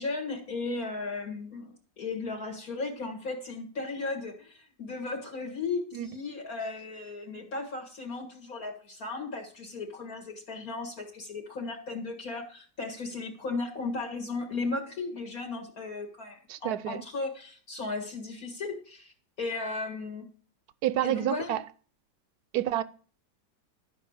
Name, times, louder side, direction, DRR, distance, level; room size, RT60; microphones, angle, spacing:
voice 1, 0.0-20.3 21.0-21.6, left 3 dB, 50° left, 2.1 m, -36 dB
voice 2, 16.5-17.0 20.8-21.6 22.5-22.8, right 12 dB, 65° right, 1.1 m, -28 dB
12.5 x 5.5 x 7.9 m
omnidirectional pair, 2.0 m